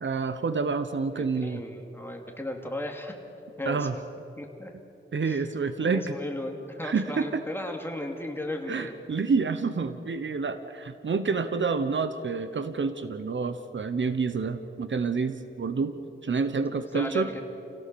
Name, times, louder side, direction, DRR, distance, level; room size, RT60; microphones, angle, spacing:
voice 1, 0.0-1.6 3.7-4.0 5.1-6.1 6.8-7.4 8.7-15.9 16.2-17.3, right 4 dB, 65° right, 10 dB, 1.0 m, -28 dB
voice 2, 1.2-3.1 3.6-4.0 4.4-4.7 5.2-5.4 5.8-9.0 16.7-17.4, left 1 dB, 10° left, 2 dB, 2.7 m, -35 dB
29.0 x 17.0 x 7.0 m, 2.8 s
wide cardioid pair, 95°, 21 cm